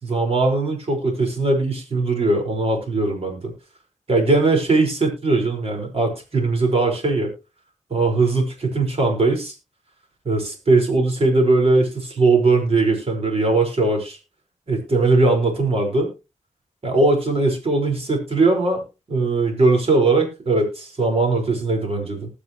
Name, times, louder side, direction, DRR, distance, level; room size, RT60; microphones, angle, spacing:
voice 1, 0.0-3.5 4.1-7.3 7.9-9.5 10.2-14.2 14.7-16.1 16.8-18.8 19.1-22.3, right 3 dB, 50° right, 2 dB, 4.8 m, -20 dB
20.0 x 6.8 x 3.0 m, 0.28 s
wide cardioid pair, 105°, 13 cm